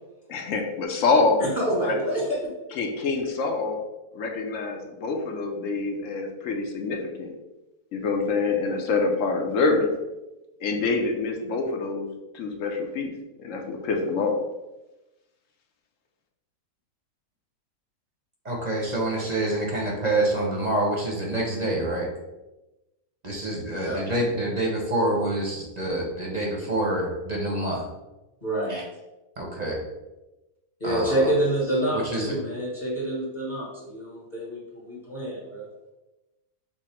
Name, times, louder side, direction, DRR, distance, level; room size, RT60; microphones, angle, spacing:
voice 1, 0.3-1.4 1.8-2.0 2.7-3.8 4.1-7.3 7.9-9.9 10.6-12.1 12.3-13.1 13.4-14.4, left 3 dB, 65° left, 2 dB, 1.0 m, -26 dB
voice 2, 1.4-2.5 23.8-24.0 28.4-28.8 30.8-35.7, right 1 dB, 30° left, -6 dB, 1.3 m, -27 dB
voice 3, 18.4-22.1 23.2-27.9 28.7-28.9 29.4-29.8 30.8-31.3 31.9-32.4, right 1 dB, 35° right, -1 dB, 0.7 m, -27 dB
6.1 x 2.0 x 4.3 m, 1.0 s
omnidirectional pair, 1.6 m